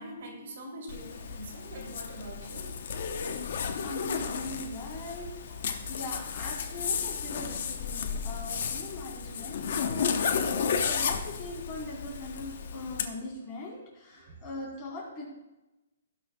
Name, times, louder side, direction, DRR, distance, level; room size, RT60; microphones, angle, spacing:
voice 1, 0.0-2.8 5.5-5.8 7.9-8.0 9.3-9.7 10.4-10.7 14.2-14.4, right 1 dB, 55° right, 0 dB, 2.9 m, -45 dB
Zipper (clothing), 0.9-13.1, left 6 dB, 55° left, 0.8 m, -33 dB
voice 2, 3.5-5.3 5.9-15.2, left 2 dB, 20° left, -4 dB, 3.1 m, -41 dB
18.0 x 6.3 x 2.3 m, 1.0 s
hypercardioid pair, 165°, 0 cm